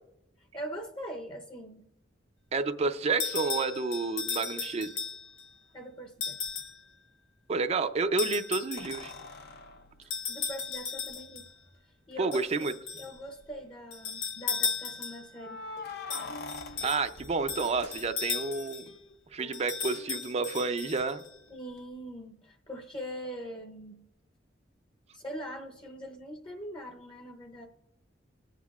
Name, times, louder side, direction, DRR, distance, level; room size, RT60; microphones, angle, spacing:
voice 1, 0.4-1.9 5.7-6.4 10.0-11.5 12.1-12.4 12.9-15.7 21.5-24.0 25.1-27.7, equal, 25° left, 5 dB, 0.7 m, -42 dB
voice 2, 2.5-4.9 7.5-9.1 12.2-12.7 16.8-18.9 19.3-21.2, right 4 dB, 35° right, 9 dB, 0.4 m, -30 dB
sound 1, 3.2-5.4 6.2-6.8 8.2-9.2 10.1-11.5 12.3-13.1 13.9-15.3 16.1-18.9 19.5-21.3, left 5 dB, 80° left, 1.1 m, -36 dB
sound 2, 6.5-6.6 8.8-11.2 12.1-12.2 12.5-12.6 13.2-13.6 15.3-18.5 21.0-21.1, left 4 dB, 60° left, 0.6 m, -44 dB
Plucked string instrument, 15.8-17.7 18.4-21.2 21.5-21.6 21.9-22.0, left 1 dB, 45° left, 1.1 m, -52 dB
20.5 x 8.3 x 2.4 m, 0.93 s
head